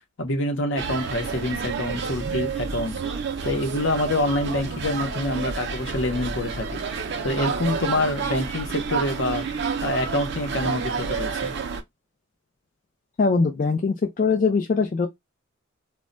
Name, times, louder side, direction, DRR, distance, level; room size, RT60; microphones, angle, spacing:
voice 1, 0.2-2.9 3.4-6.8 7.2-9.4 9.8-11.5, left 1 dB, 60° left, 0.7 m, -26 dB
sound 1, 0.8-11.8, right 5 dB, 55° right, 0.5 m, -30 dB
voice 2, 13.2-15.1, left 4 dB, 40° left, 0.3 m, -22 dB
2.2 x 2.1 x 3.7 m
head